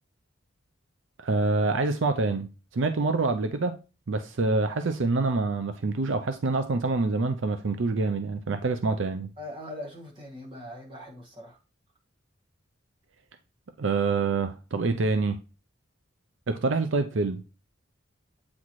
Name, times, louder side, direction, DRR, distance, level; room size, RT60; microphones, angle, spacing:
voice 1, 1.2-3.8 4.1-9.3 13.8-15.4 16.5-17.4, right 3 dB, 70° right, 0.5 m, -26 dB
voice 2, 9.4-11.6, left 1 dB, 25° right, 1.7 m, -41 dB
8.5 x 4.1 x 3.1 m
head